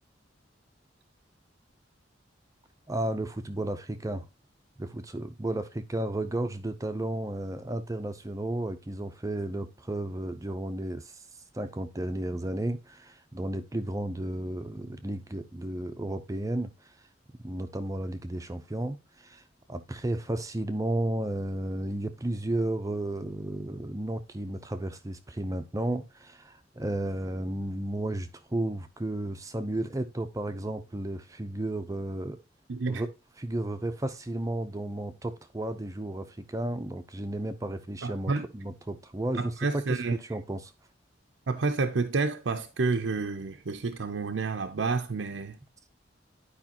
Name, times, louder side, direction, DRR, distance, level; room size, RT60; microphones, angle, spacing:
voice 1, 2.9-4.3 4.8-11.2 11.5-16.9 17.4-19.4 19.7-32.4 32.9-33.1 33.4-39.5 39.9-40.7, right 1 dB, 20° right, 0.6 m, -33 dB
voice 2, 32.7-33.0 38.0-38.5 39.3-40.2 41.5-45.6, right 4 dB, 80° right, 0.6 m, -29 dB
11.0 x 4.9 x 2.8 m
head